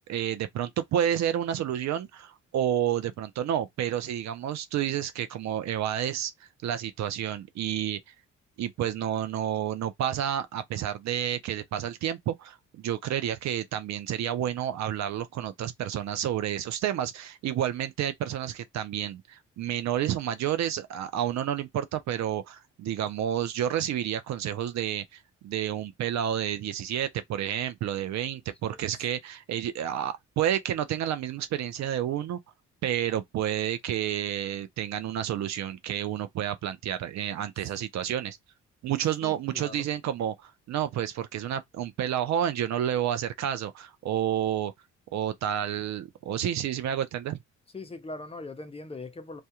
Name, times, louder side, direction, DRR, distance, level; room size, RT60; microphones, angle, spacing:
voice 1, 0.1-6.3 6.6-8.0 8.6-32.4 32.8-38.4 38.8-44.7 45.1-47.4, right 10 dB, 65° right, 0.5 m, -30 dB
voice 2, 28.7-29.1 37.6-37.7 39.2-39.9 47.7-49.4, left 3 dB, 20° left, 0.5 m, -41 dB
2.4 x 2.2 x 2.8 m
cardioid pair, 90°, 30 cm